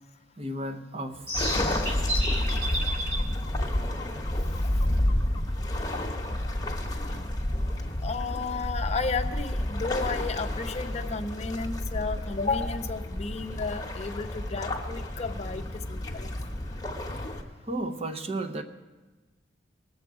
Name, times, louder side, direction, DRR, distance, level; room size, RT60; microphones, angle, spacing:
voice 1, 0.4-1.3 17.6-18.6, right 1 dB, 35° right, 0.7 m, -33 dB
sound 1, 1.1-7.0, equal, 60° right, 3.4 m, -35 dB
sound 2, 1.3-17.4, left 1 dB, 20° left, 1.0 m, -30 dB
voice 2, 8.0-16.3, left 4 dB, 35° left, 0.6 m, -33 dB
20.0 x 7.0 x 4.8 m
head